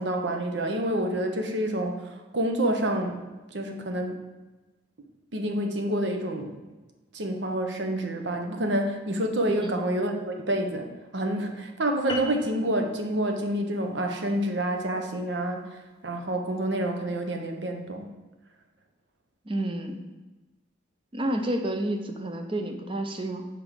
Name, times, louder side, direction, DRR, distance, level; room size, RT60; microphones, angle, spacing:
voice 1, 0.0-3.2 3.5-4.2 5.3-6.6 7.1-18.1, right 1 dB, 70° right, 4 dB, 1.0 m, -28 dB
sound 1, 12.1-16.8, left 3 dB, 25° left, 0.9 m, -42 dB
voice 2, 19.5-20.0 21.1-23.5, right 1 dB, 25° right, 5 dB, 0.7 m, -30 dB
5.5 x 5.1 x 6.4 m, 1.2 s
head